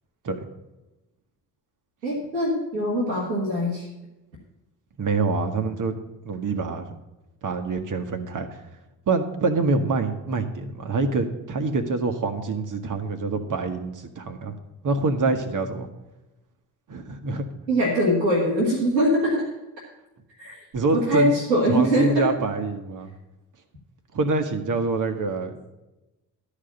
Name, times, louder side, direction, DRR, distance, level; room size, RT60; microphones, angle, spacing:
voice 1, 2.0-3.9 17.7-19.4 20.4-20.6 20.9-22.3, equal, 85° right, -6 dB, 1.4 m, -22 dB
voice 2, 5.0-5.9 6.2-6.9 7.4-8.6 9.1-14.5 14.8-15.9 16.9-17.5 20.7-21.4 21.7-23.1 24.1-25.6, right 3 dB, 40° right, 7 dB, 1.3 m, -26 dB
12.5 x 5.0 x 6.9 m, 1.0 s
figure-of-eight pair, 40°, 49 cm